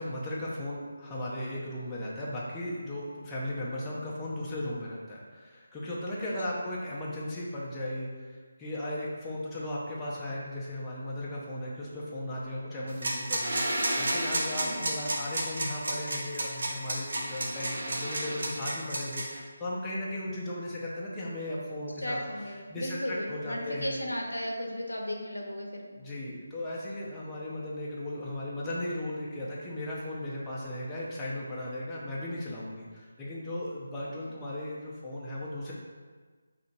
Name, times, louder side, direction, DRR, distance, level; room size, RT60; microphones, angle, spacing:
voice 1, 0.0-22.3 22.7-24.0 25.9-35.7, left 1 dB, 10° left, -7 dB, 0.6 m, -36 dB
sound 1, 12.9-19.4, right 1 dB, 60° right, 0.7 m, -31 dB
voice 2, 22.0-25.8, equal, 85° left, 1 dB, 0.7 m, -35 dB
5.0 x 2.8 x 2.6 m, 1.5 s
figure-of-eight pair, 155°, 0 cm